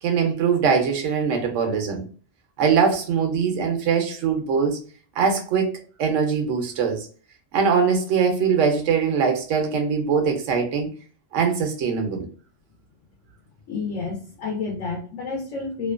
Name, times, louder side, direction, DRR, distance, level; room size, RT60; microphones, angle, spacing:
voice 1, 0.0-2.0 2.6-4.8 5.2-5.7 6.0-7.1 7.5-10.9 11.3-12.3, right 6 dB, 90° right, 1.0 m, -22 dB
voice 2, 13.7-15.9, left 4 dB, 85° left, 1.0 m, -30 dB
2.8 x 2.2 x 2.3 m
omnidirectional pair, 1.3 m